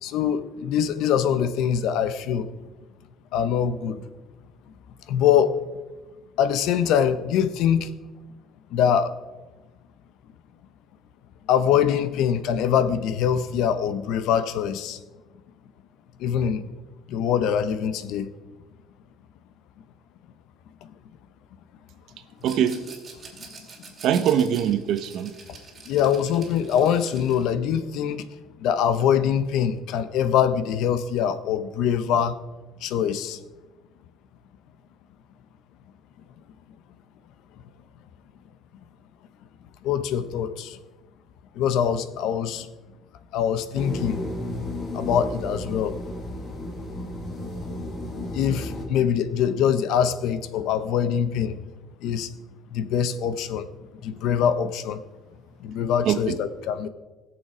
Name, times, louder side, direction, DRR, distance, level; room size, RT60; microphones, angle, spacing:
voice 1, 0.0-2.5 3.3-4.0 5.1-5.6 6.4-7.9 8.7-9.2 11.5-15.0 16.2-16.6 17.1-18.3 20.8-20.9 25.5-25.6 25.9-28.3 28.6-32.4 32.8-33.4 39.8-40.8 41.5-42.7 43.3-44.2 44.9-46.0 48.3-51.6 52.0-52.3 52.7-53.7 54.0-55.0 55.6-56.9, left 8 dB, 70° left, 0.8 m, -23 dB
Rattle, 22.4-27.5, right 4 dB, 25° right, 2.4 m, -45 dB
voice 2, 22.4-22.9 24.0-25.3 56.0-56.4, right 9 dB, 60° right, 0.9 m, -23 dB
sound 1, 43.7-48.9, left 1 dB, 30° left, 2.0 m, -33 dB
20.0 x 7.0 x 5.0 m
cardioid pair, 160°, 0 cm